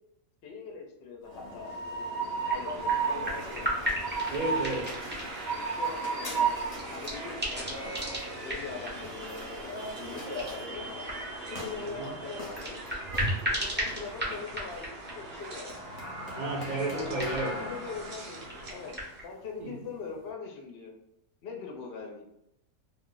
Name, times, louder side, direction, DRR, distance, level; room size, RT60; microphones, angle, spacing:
voice 1, 0.4-3.7 5.5-10.9 11.5-12.9 13.4-15.7 16.4-16.5 17.3-18.9 19.2-20.9 21.4-22.2, left 5 dB, 60° left, 1 dB, 0.7 m, -42 dB
sound 1, 1.2-20.3, left 1 dB, 30° left, 0.9 m, -42 dB
Train, 1.3-19.1, right 5 dB, 90° right, 1.2 m, -36 dB
sound 2, 1.7-19.2, equal, 10° right, 0.5 m, -38 dB
voice 2, 4.3-5.0 11.8-12.1 16.4-17.6 19.6-19.8, right 2 dB, 40° right, -2 dB, 0.8 m, -32 dB
2.5 x 2.4 x 3.7 m, 0.83 s
omnidirectional pair, 1.4 m